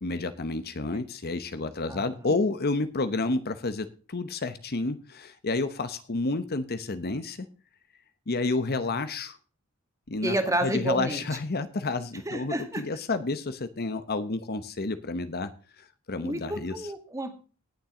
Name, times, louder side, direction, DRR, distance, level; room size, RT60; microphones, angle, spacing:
voice 1, 0.0-7.5 8.3-9.4 10.1-15.5 15.8-16.9, left 3 dB, 50° left, 11 dB, 0.9 m, -30 dB
voice 2, 10.2-11.2 12.3-12.8 16.2-17.3, right 1 dB, 15° right, 7 dB, 2.0 m, -29 dB
18.5 x 7.4 x 3.8 m, 0.36 s
head